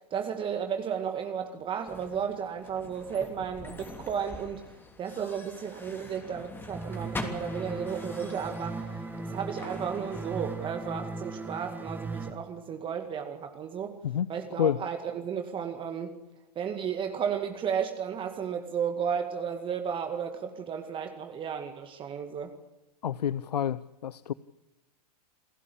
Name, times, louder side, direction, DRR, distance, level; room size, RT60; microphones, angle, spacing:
voice 1, 0.0-4.7 5.0-8.9 9.2-14.0 14.3-16.2 16.6-22.5, right 7 dB, 25° right, 2.0 m, -33 dB
sound 1, 1.9-11.0, left 2 dB, 10° left, 3.1 m, -44 dB
sound 2, 6.7-12.3, right 3 dB, 10° right, 2.6 m, -38 dB
voice 2, 23.0-24.3, left 9 dB, 85° left, 0.7 m, -29 dB
28.5 x 16.0 x 8.4 m
hypercardioid pair, 115°, 20 cm